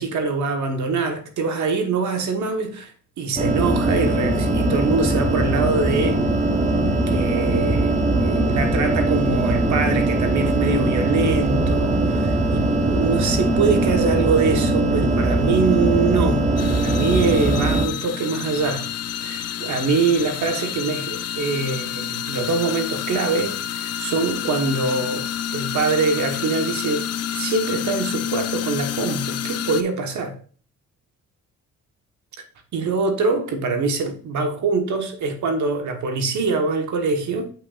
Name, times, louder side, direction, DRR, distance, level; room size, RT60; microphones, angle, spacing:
voice 1, 0.0-6.2 7.1-18.9 19.2-30.4 32.7-37.5, right 4 dB, 70° right, 1.3 m, -24 dB
sound 1, 3.4-17.9, right 2 dB, 25° right, 1.1 m, -21 dB
sound 2, 16.6-29.8, left 10 dB, 55° left, 0.6 m, -29 dB
8.1 x 5.6 x 2.5 m
cardioid pair, 90°, 30 cm